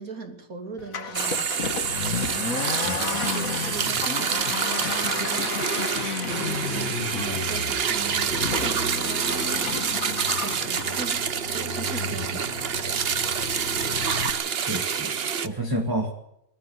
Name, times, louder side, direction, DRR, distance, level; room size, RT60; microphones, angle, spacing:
voice 1, 0.0-1.7 2.3-9.8 10.4-11.2 11.5-12.3, right 4 dB, 90° right, 6 dB, 3.4 m, -39 dB
Accelerating revving vroom, 0.8-14.3, left 6 dB, 75° left, 1.9 m, -32 dB
sound 1, 1.1-15.5, right 7 dB, 50° right, 1.1 m, -27 dB
voice 2, 2.8-3.2 12.1-12.2 14.5-15.1 15.4-16.1, right 1 dB, 15° right, 2 dB, 2.3 m, -30 dB
22.0 x 13.5 x 9.4 m, 0.78 s
omnidirectional pair, 1.5 m